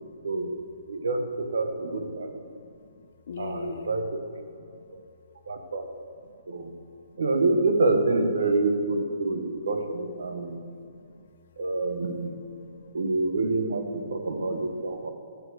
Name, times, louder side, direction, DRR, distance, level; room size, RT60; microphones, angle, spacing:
voice 1, 0.9-2.3 3.4-4.2 4.9-5.0 5.5-5.9 6.5-6.7 7.2-10.6 11.6-12.4 12.9-15.1, right 2 dB, 80° right, 5 dB, 1.1 m, -27 dB
voice 2, 2.3-4.1 4.5-5.1 6.2-6.6 7.1-7.2 9.5-9.6 10.3-11.3 12.6-12.9 14.2-14.8 15.0-15.1, left 6 dB, 60° left, 11 dB, 0.6 m, -45 dB
12.0 x 4.1 x 6.3 m, 2.5 s
hypercardioid pair, 150°, 0 cm